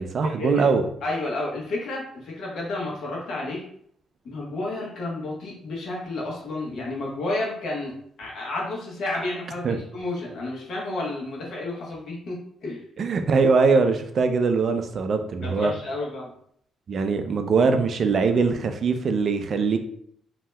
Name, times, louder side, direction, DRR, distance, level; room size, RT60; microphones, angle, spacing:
voice 1, 0.0-0.9 9.6-9.8 13.0-15.7 16.9-19.8, right 4 dB, 55° right, 7 dB, 0.4 m, -22 dB
voice 2, 1.0-3.6 4.2-7.9 8.2-12.8 15.4-16.3, left 2 dB, 65° left, -3 dB, 1.0 m, -31 dB
2.7 x 2.2 x 3.2 m, 0.66 s
cardioid pair, 90°, 0 cm